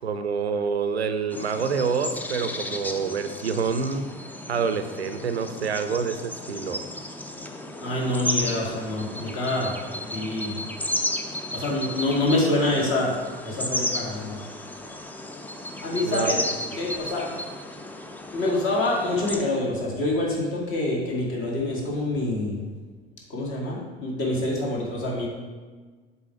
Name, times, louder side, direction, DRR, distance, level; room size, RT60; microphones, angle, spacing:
voice 1, 0.0-4.1 4.5-6.8 16.0-16.4, right 5 dB, 85° right, 10 dB, 0.5 m, -27 dB
sound 1, 1.3-19.4, left 1 dB, 5° left, 0.5 m, -33 dB
voice 2, 7.8-9.7 10.0-10.6 11.5-13.1 13.4-14.4 15.8-16.4 16.7-17.3 18.3-22.6 23.3-25.3, left 2 dB, 40° left, -3 dB, 2.1 m, -26 dB
6.9 x 4.3 x 4.7 m, 1.4 s
figure-of-eight pair, 70°, 31 cm